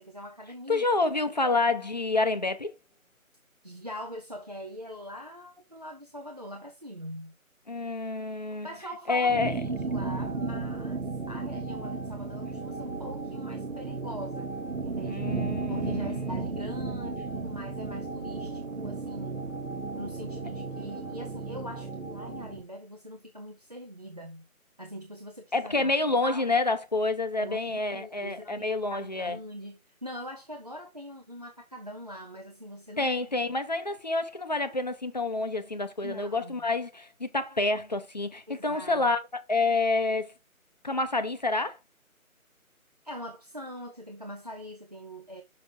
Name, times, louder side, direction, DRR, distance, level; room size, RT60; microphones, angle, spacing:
voice 1, 0.0-0.9 1.4-1.5 3.6-7.3 8.6-14.6 14.8-15.2 15.7-19.5 20.0-24.5 24.8-25.9 26.2-26.5 27.4-33.2 36.0-36.6 38.5-39.1 43.0-45.4, equal, 30° right, 0.6 m, -42 dB
voice 2, 0.7-2.7 7.7-8.7 9.1-9.5 15.1-16.4 25.5-29.4 33.0-39.2 39.5-40.3 40.8-41.8, left 3 dB, 30° left, 0.7 m, -28 dB
sound 1, 9.3-22.6, right 3 dB, 60° right, 1.5 m, -34 dB
6.3 x 5.9 x 3.6 m
figure-of-eight pair, 160°, 43 cm